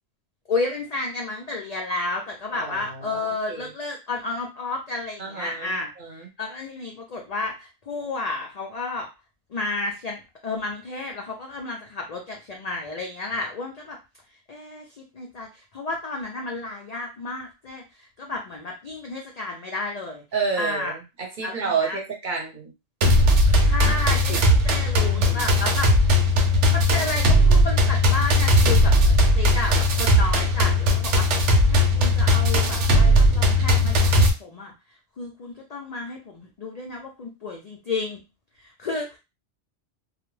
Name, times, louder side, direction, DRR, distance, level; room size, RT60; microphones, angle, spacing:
voice 1, 0.5-9.1 9.5-14.0 14.5-20.2 20.6-20.9 21.4-22.0 23.6-25.9 26.7-34.7 35.2-38.2 38.6-39.2, left 3 dB, 65° left, 1 dB, 0.4 m, -32 dB
voice 2, 2.5-3.7 5.2-6.3 20.3-22.7 23.5-24.0 24.3-24.4 25.1-25.6, right 5 dB, 50° right, 0 dB, 0.7 m, -31 dB
sound 1, 23.0-34.3, left 1 dB, 85° right, 0.9 m, -18 dB
2.3 x 2.0 x 3.1 m, 0.26 s
omnidirectional pair, 1.2 m